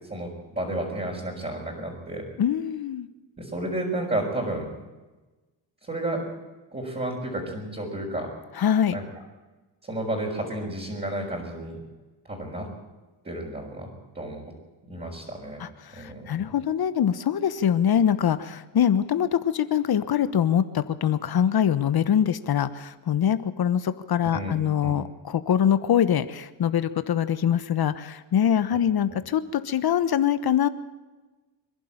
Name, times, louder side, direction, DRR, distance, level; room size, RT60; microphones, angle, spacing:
voice 1, 0.1-2.2 3.4-4.7 5.9-6.2 6.7-8.3 8.9-9.0 9.8-11.8 12.2-12.7 13.2-13.9 14.1-14.5 14.9-15.6 15.9-16.4 24.3-24.5 24.8-24.9, right 1 dB, 20° right, -5 dB, 5.6 m, -31 dB
voice 2, 2.4-3.1 8.6-9.0 15.6-30.7, left 9 dB, 50° left, 13 dB, 1.2 m, -24 dB
25.5 x 11.5 x 9.0 m, 1.2 s
cardioid pair, 110°, 46 cm